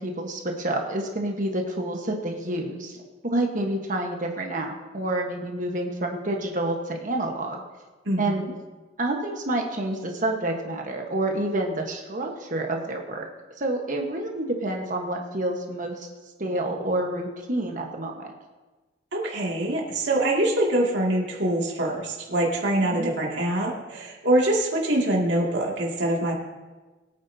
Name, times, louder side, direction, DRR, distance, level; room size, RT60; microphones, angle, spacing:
voice 1, 0.0-2.9 3.2-7.6 8.2-8.4 9.0-13.2 13.6-16.1 16.4-18.3 22.8-23.1, right 1 dB, 45° right, 2 dB, 1.3 m, -28 dB
voice 2, 8.1-8.5 19.1-26.3, right 1 dB, 65° right, -3 dB, 2.3 m, -24 dB
21.5 x 9.2 x 2.8 m, 1.2 s
head